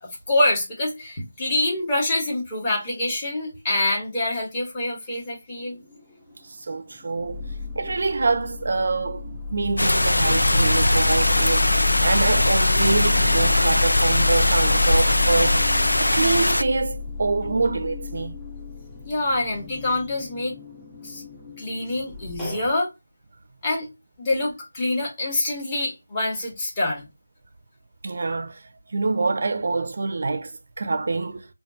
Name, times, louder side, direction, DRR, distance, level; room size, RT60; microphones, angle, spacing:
voice 1, 0.0-5.8 19.0-20.5 21.0-21.2 21.6-22.9 23.6-23.9 24.2-27.0, left 2 dB, 20° left, 1.4 m, -26 dB
sound 1, 5.6-6.4 6.8-22.7, left 4 dB, ahead, 0.6 m, -29 dB
voice 2, 6.4-7.4 7.8-15.6 16.0-18.4 28.0-28.6 28.9-31.5, right 3 dB, 45° right, 0.5 m, -25 dB
sound 2, 9.8-16.6, left 1 dB, 90° left, 0.4 m, -21 dB
4.9 x 2.3 x 2.7 m
figure-of-eight pair, 165°, 0 cm